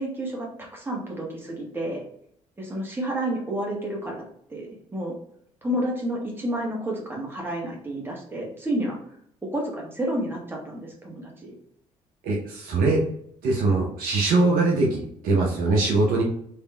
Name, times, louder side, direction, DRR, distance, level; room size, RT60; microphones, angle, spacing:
voice 1, 0.0-2.0 2.6-4.2 4.5-5.1 5.6-9.0 9.5-11.5, right 1 dB, 15° right, -2 dB, 1.4 m, -30 dB
voice 2, 12.2-13.0 13.4-16.2, right 3 dB, 60° right, -1 dB, 0.7 m, -22 dB
3.3 x 3.1 x 2.2 m, 0.71 s
figure-of-eight pair, 50°, 17 cm